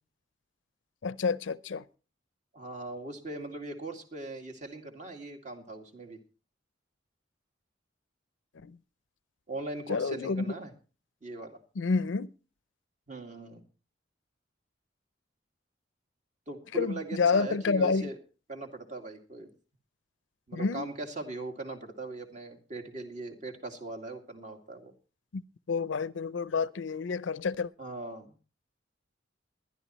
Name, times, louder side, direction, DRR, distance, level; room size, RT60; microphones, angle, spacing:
voice 1, 1.0-1.8 8.6-8.8 9.9-10.4 11.8-12.3 16.7-18.1 20.5-20.9 25.3-25.4 25.7-27.7, left 4 dB, 80° left, 0.5 m, -29 dB
voice 2, 2.5-6.2 9.5-10.7 11.2-11.6 13.1-13.6 16.5-18.2 18.5-19.5 20.5-24.9 27.8-28.3, right 2 dB, 40° right, 2.2 m, -40 dB
21.0 x 11.5 x 3.0 m
head